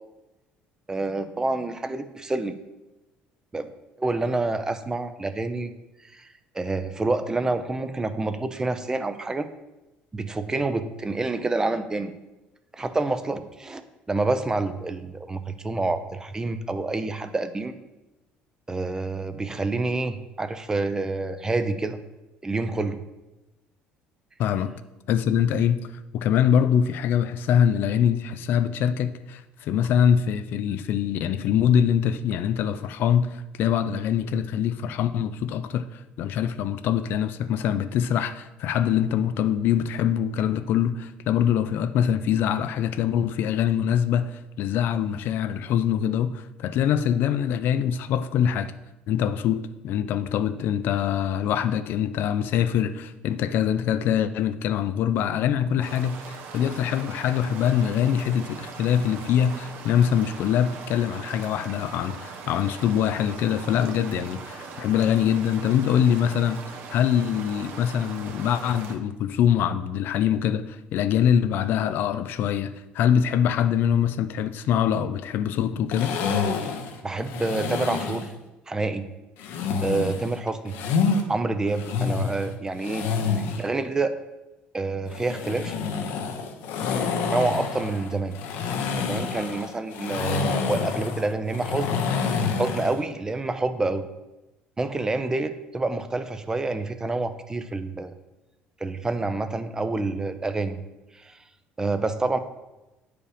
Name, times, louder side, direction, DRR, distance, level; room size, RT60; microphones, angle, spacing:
voice 1, 0.9-2.6 3.5-3.7 4.0-5.7 6.0-6.3 6.5-9.5 10.1-12.1 12.7-13.8 14.1-17.7 18.7-22.0 22.4-23.0 77.0-78.3 78.7-79.1 79.8-80.8 81.3-83.1 83.6-84.2 84.7-85.8 87.3-88.4 88.9-92.0 92.6-94.1 94.8-98.1 98.8-100.8 101.1-101.4 101.8-102.4, right 3 dB, 15° right, 0.6 m, -27 dB
voice 2, 24.4-24.7 25.1-25.8 26.1-48.7 49.1-76.2, left 9 dB, 65° left, 0.4 m, -24 dB
sound 1, 55.8-69.0, right 5 dB, 65° right, 1.0 m, -40 dB
sound 2, 75.9-78.3 79.4-81.2 81.7-83.7 85.1-93.0, left 5 dB, 80° left, 1.0 m, -28 dB
8.8 x 4.9 x 5.0 m
cardioid pair, 105°, 4 cm